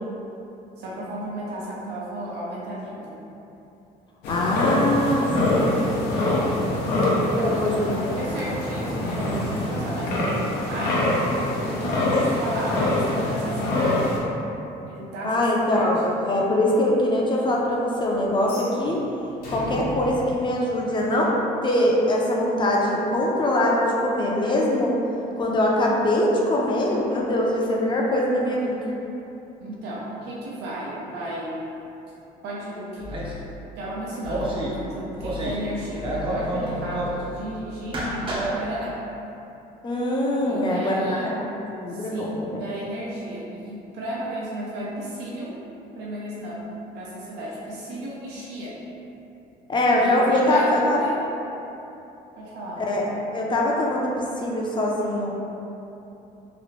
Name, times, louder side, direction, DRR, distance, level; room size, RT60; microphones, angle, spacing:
voice 1, 0.8-3.2 7.3-10.3 10.7-14.1 14.9-15.9 29.6-31.8 32.4-33.1 33.8-39.0 40.5-41.3 41.9-45.6 45.9-46.6 46.9-48.7 49.9-51.2 52.4-52.8, right 1 dB, 80° right, -5 dB, 0.5 m, -33 dB
sound 1, 4.2-14.2, left 1 dB, 85° left, 0.6 m, -24 dB
voice 2, 4.3-6.6 7.4-8.1 15.2-19.0 19.5-21.3 21.6-25.0 25.4-28.8 39.8-41.4 41.7-42.6 49.7-51.0 52.8-53.1 53.3-55.4, left 1 dB, 30° left, -2 dB, 0.5 m, -23 dB
sound 2, 18.4-21.5, equal, 65° left, 1.0 m, -37 dB
sound 3, 33.0-33.4 34.2-34.7 35.1-35.6 35.9-37.2 37.8-38.5, right 1 dB, 30° right, 0.6 m, -29 dB
3.0 x 2.4 x 3.0 m, 2.9 s
cardioid pair, 110°, 17 cm